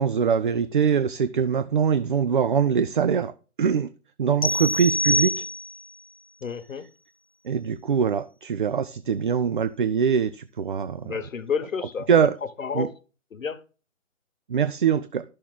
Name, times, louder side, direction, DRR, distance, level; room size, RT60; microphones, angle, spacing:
voice 1, 0.0-3.3 3.6-3.9 4.2-5.4 7.4-11.2 12.1-12.4 12.7-12.9 14.5-15.2, right 7 dB, 40° right, 0.4 m, -23 dB
sound 1, 4.4-5.9, left 1 dB, 30° left, 0.4 m, -25 dB
voice 2, 6.4-6.8 11.0-12.1 12.6-12.9 13.3-13.6, left 6 dB, 85° left, 1.4 m, -30 dB
12.0 x 6.5 x 3.8 m
hypercardioid pair, 155°, 39 cm